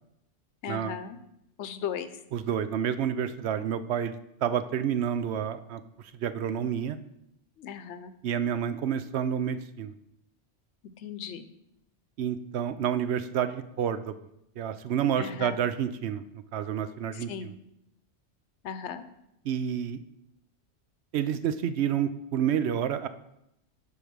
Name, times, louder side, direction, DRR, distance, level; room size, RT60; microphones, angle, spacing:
voice 1, 0.6-1.2 1.6-2.1 7.6-8.1 11.0-11.5 15.2-15.6 17.1-17.5 18.6-19.0, left 8 dB, 85° left, 11 dB, 1.0 m, -37 dB
voice 2, 2.3-4.1 4.4-5.8 6.1-7.0 8.2-9.9 12.2-14.1 14.6-16.2 16.5-17.3 19.4-20.0 21.1-23.1, right 9 dB, 75° right, 12 dB, 0.9 m, -29 dB
8.3 x 5.3 x 6.2 m, 0.82 s
omnidirectional pair, 1.1 m